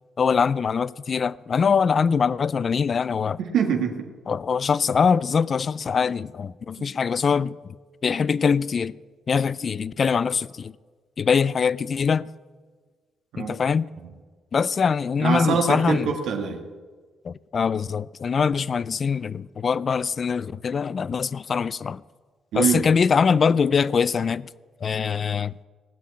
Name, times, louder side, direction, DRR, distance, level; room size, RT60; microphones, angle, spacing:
voice 1, 0.2-3.4 4.3-7.6 8.0-9.0 9.3-10.7 11.2-12.3 13.4-13.9 14.5-16.1 17.2-22.0 22.5-24.5 24.8-25.5, left 6 dB, 45° left, 0.4 m, -23 dB
voice 2, 3.4-4.1 6.8-6.9 13.3-13.5 14.0-14.1 15.2-16.6 22.5-22.9, right 6 dB, 75° right, 1.7 m, -24 dB
18.5 x 6.4 x 9.6 m
cardioid pair, 90°, 0 cm